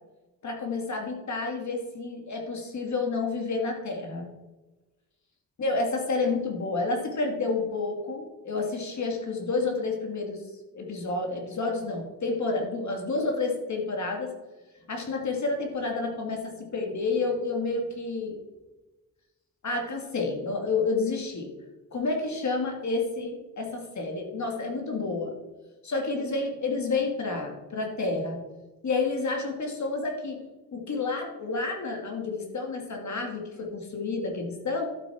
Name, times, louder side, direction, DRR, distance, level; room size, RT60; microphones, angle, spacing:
voice 1, 0.4-4.3 5.6-10.4 10.7-14.3 14.9-18.4 19.6-21.5 21.9-25.3 25.8-28.4 28.8-30.4 30.7-34.9, left 3 dB, 50° left, 2 dB, 1.8 m, -30 dB
12.0 x 6.0 x 4.7 m, 1.1 s
wide cardioid pair, 160°, 36 cm